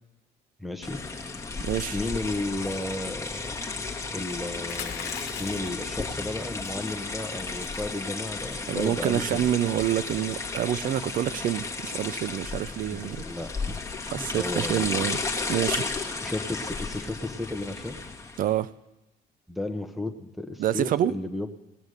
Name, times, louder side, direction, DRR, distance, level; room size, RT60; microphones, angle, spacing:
voice 1, 0.6-1.0 1.9-3.5 3.8-9.5 12.9-13.8 14.2-14.9 16.2-18.0 19.5-21.6, left 2 dB, ahead, 8 dB, 1.1 m, -34 dB
sound 1, 0.8-18.5, left 4 dB, 15° left, 1.4 m, -34 dB
voice 2, 1.6-2.0 8.7-13.2 14.0-15.2 15.5-15.8 18.4-18.7 20.6-21.1, right 12 dB, 55° right, 18 dB, 0.5 m, -27 dB
sound 2, 4.6-5.8 6.6-6.9 7.3-7.4 7.6-7.8 8.4-8.7, left 10 dB, 80° left, 1.1 m, -39 dB
18.5 x 7.2 x 6.5 m, 0.98 s
cardioid pair, 110°, 17 cm